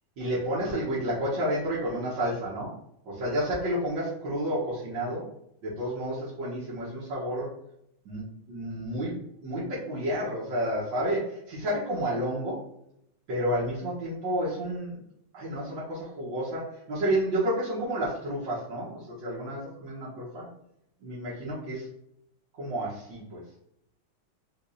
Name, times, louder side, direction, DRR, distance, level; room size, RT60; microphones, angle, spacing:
voice 1, 0.2-2.8 3.1-5.3 5.6-7.5 8.1-12.6 13.3-15.0 15.3-20.5 21.0-21.9 22.6-23.4, right 1 dB, 70° right, -10 dB, 2.3 m, -30 dB
5.1 x 2.5 x 4.0 m, 0.75 s
omnidirectional pair, 2.1 m